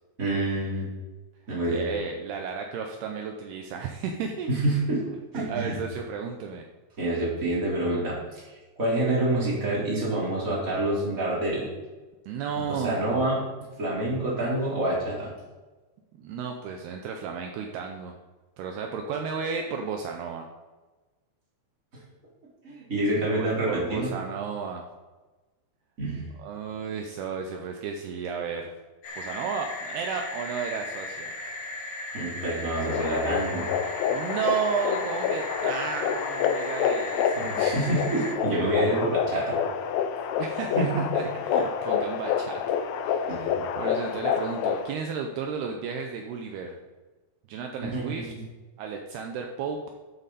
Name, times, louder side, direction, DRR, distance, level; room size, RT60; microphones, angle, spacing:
voice 1, 0.2-0.9 1.5-1.9 4.5-5.0 5.3-5.8 7.0-8.4 8.8-11.7 12.7-13.4 13.8-15.3 22.6-24.1 26.0-26.2 32.1-33.7 37.4-39.6 40.7-40.9 43.3-43.7 47.9-48.4, right 1 dB, 20° right, -7 dB, 3.8 m, -27 dB
voice 2, 1.7-4.5 5.1-6.7 12.3-13.0 16.2-18.2 18.6-20.5 23.1-24.9 26.4-28.7 29.2-31.3 34.1-37.7 40.4-46.8 47.5-48.3 48.8-49.8, right 6 dB, 75° right, 3 dB, 2.7 m, -33 dB
sound 1, 29.0-38.4, left 2 dB, 60° left, 2.8 m, -37 dB
sound 2, 32.8-44.9, left 8 dB, 80° left, 2.2 m, -28 dB
13.5 x 8.0 x 4.2 m, 1.2 s
omnidirectional pair, 4.9 m